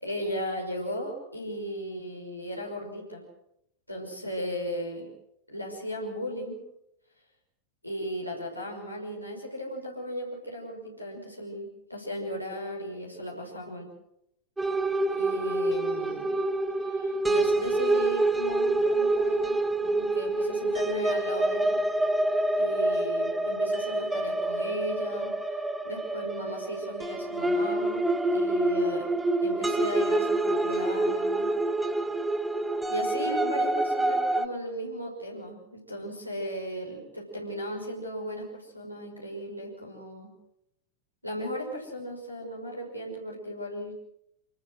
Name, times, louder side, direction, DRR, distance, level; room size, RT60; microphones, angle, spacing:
voice 1, 0.0-3.2 3.9-5.1 5.5-6.6 7.8-13.9 15.2-16.4 16.8-21.8 22.6-25.6 25.8-29.1 29.4-31.5 32.9-40.3 41.2-43.9, equal, 90° left, -2 dB, 5.9 m, -36 dB
sound 1, 14.6-34.5, right 2 dB, 10° right, 1.5 m, -27 dB
26.5 x 20.0 x 6.5 m, 0.78 s
figure-of-eight pair, 90°, 0 cm